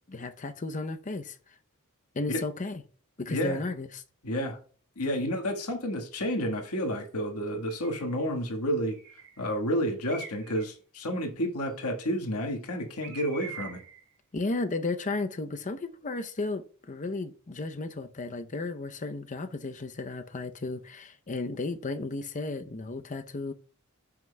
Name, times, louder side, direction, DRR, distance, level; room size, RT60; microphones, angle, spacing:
voice 1, 0.1-1.4 2.1-2.8 3.2-4.0 14.3-23.5, left 3 dB, 35° left, 0.6 m, -34 dB
voice 2, 3.3-3.6 4.2-4.6 5.0-9.0 9.4-13.8, equal, 85° left, 1.5 m, -30 dB
Bird, 7.7-8.1 8.9-9.4 10.1-10.7 13.0-14.0, right 5 dB, 75° right, 2.9 m, -44 dB
14.5 x 5.9 x 2.2 m
head